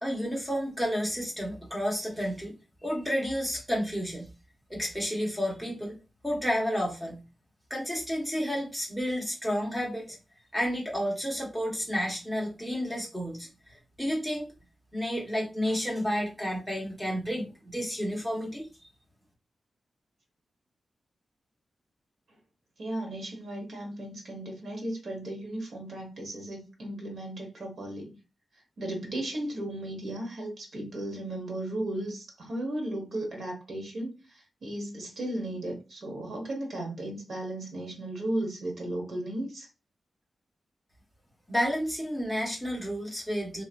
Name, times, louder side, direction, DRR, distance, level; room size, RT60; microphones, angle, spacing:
voice 1, 0.0-2.5 2.8-4.3 4.7-6.0 6.2-7.2 7.7-10.2 10.5-14.5 14.9-18.9 41.5-43.6, equal, ahead, -2 dB, 1.0 m, -31 dB
voice 2, 22.8-28.2 28.8-39.7, right 1 dB, 65° right, 0 dB, 1.3 m, -35 dB
3.0 x 2.8 x 2.4 m, 0.29 s
wide cardioid pair, 175°, 0 cm